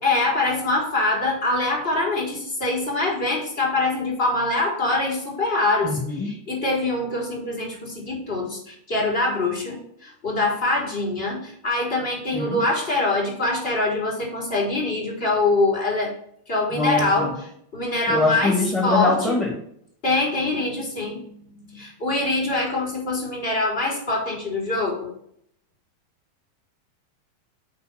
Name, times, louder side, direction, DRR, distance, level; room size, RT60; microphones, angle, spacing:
voice 1, 0.0-16.1 16.5-17.3 17.7-18.6 18.8-19.4 20.0-25.1, left 2 dB, 50° left, -2 dB, 3.7 m, -24 dB
voice 2, 5.8-6.3 12.3-12.6 16.7-17.3 18.1-19.5, left 2 dB, 20° left, -4 dB, 2.0 m, -23 dB
6.8 x 4.5 x 6.2 m, 0.68 s
figure-of-eight pair, 90°, 0 cm